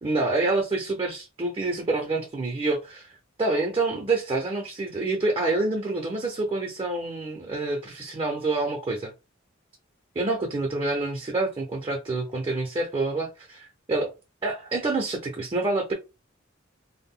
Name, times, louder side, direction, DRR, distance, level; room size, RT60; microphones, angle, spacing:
voice 1, 0.0-3.1 3.4-9.1 10.2-14.1 14.4-15.9, right 2 dB, 25° right, 0.5 m, -27 dB
2.2 x 2.0 x 3.5 m
head